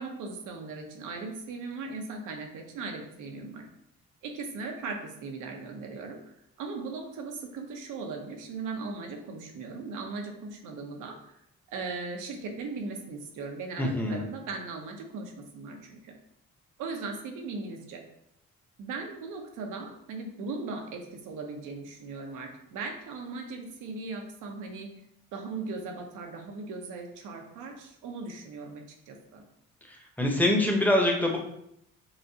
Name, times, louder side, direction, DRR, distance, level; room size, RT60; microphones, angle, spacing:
voice 1, 0.0-3.7 4.2-6.2 6.6-11.4 11.7-16.1 16.8-18.0 18.8-24.9 25.3-29.4, right 4 dB, 90° right, 3 dB, 0.8 m, -38 dB
voice 2, 13.8-14.2 30.2-31.4, left 1 dB, 5° left, 0 dB, 0.9 m, -24 dB
5.8 x 2.5 x 2.8 m, 0.76 s
cardioid pair, 90°, 30 cm